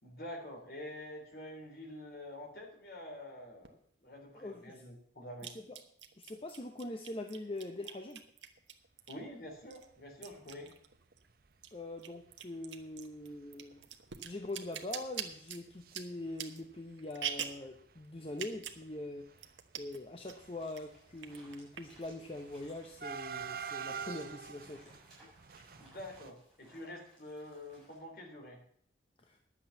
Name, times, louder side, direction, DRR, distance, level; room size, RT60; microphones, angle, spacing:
voice 1, 0.0-5.5 9.1-10.7 25.8-28.6, left 1 dB, 55° left, 1 dB, 3.4 m, -47 dB
sound 1, 3.6-3.7 5.4-9.3 9.7-11.3 11.5-17.7 18.3-18.8 19.1-19.2 19.4-20.0 20.3-20.8 21.2-22.1, right 8 dB, 80° right, 1.2 m, -43 dB
voice 2, 4.3-4.8 5.7-5.8 6.2-8.2 11.7-13.8 14.2-19.5 19.8-24.9 29.2-29.4, left 2 dB, 30° left, 5 dB, 0.8 m, -43 dB
sound 2, 10.3-10.5 11.0-11.1 11.3-11.5 12.3-12.4 12.8-13.0 13.2-13.4 13.7-15.9 16.2-16.9 17.2-26.3, right 6 dB, 50° right, 0.7 m, -47 dB
sound 3, 20.5-28.0, equal, ahead, 6.6 m, -63 dB
11.0 x 8.2 x 7.0 m, 0.62 s
head